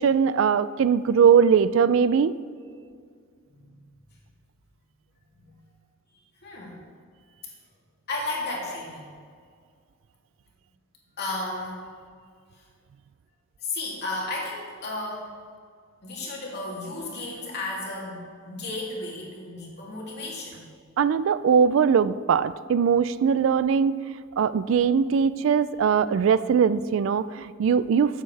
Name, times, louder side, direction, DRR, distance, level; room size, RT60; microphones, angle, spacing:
voice 1, 0.0-2.4 21.0-24.0 24.4-28.2, right 6 dB, 65° right, 15 dB, 0.3 m, -21 dB
voice 2, 5.3-5.6 6.1-6.8 8.1-9.1 11.2-11.8 13.6-15.3 16.0-20.6, left 2 dB, 55° left, -4 dB, 2.7 m, -34 dB
13.0 x 8.1 x 3.3 m, 2.1 s
head